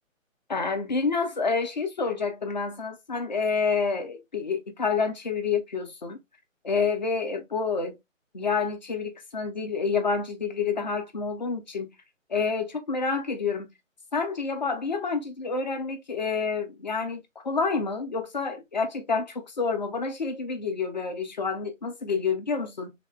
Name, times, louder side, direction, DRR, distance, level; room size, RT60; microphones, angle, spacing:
voice 1, 0.5-6.2 6.6-8.0 8.3-11.9 12.3-13.7 14.1-22.9, left 5 dB, 35° left, 0.5 m, -28 dB
3.3 x 2.0 x 2.5 m
figure-of-eight pair, 155°, 40 cm